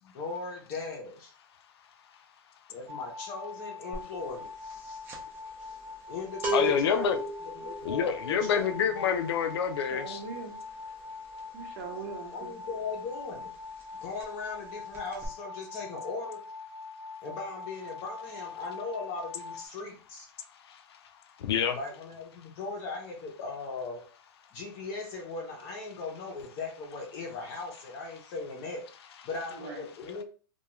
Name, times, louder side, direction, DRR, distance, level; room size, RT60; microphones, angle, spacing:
voice 1, 0.0-1.3 2.7-5.0 5.6-5.8 6.1-9.1 12.3-13.5 14.0-16.4 17.2-20.3 21.7-24.0 24.5-28.8 29.2-30.2, left 3 dB, 30° left, 0.6 m, -38 dB
sound 1, 2.9-19.7, left 4 dB, 75° right, 0.5 m, -43 dB
sound 2, 3.9-4.2 4.5-13.0 13.3-13.5 13.8-14.6 14.9-15.3, right 2 dB, 15° right, 0.5 m, -37 dB
voice 2, 6.5-7.2 7.8-10.2 20.7-21.0 21.4-21.8, left 7 dB, 80° left, 0.4 m, -28 dB
voice 3, 9.8-10.6 11.5-12.5 29.5-29.9, right 5 dB, 45° right, 0.8 m, -41 dB
2.3 x 2.2 x 2.9 m
supercardioid pair, 160°, 13 cm